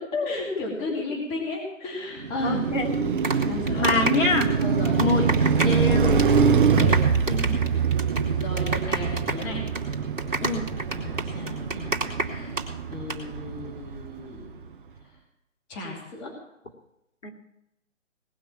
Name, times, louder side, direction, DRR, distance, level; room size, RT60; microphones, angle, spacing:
voice 1, 0.2-2.7 3.5-4.0 4.6-5.8 6.6-7.0 8.4-9.6 10.9-14.7 15.7-16.3, left 2 dB, 15° left, 0 dB, 2.6 m, -34 dB
Car passing by, 2.2-14.4, right 6 dB, 40° right, 1.1 m, -24 dB
voice 2, 2.4-2.9 3.7-4.5 5.0-5.2 5.6-6.3 6.7-6.9 7.3-7.7 10.4-10.7 17.2-17.3, left 3 dB, 65° left, 2 dB, 2.6 m, -26 dB
sound 1, 2.9-5.9 6.1-6.4 6.6-12.6 12.9-13.2, right 2 dB, 70° right, 2.8 m, -29 dB
19.0 x 6.4 x 8.7 m, 0.85 s
figure-of-eight pair, 150°, 39 cm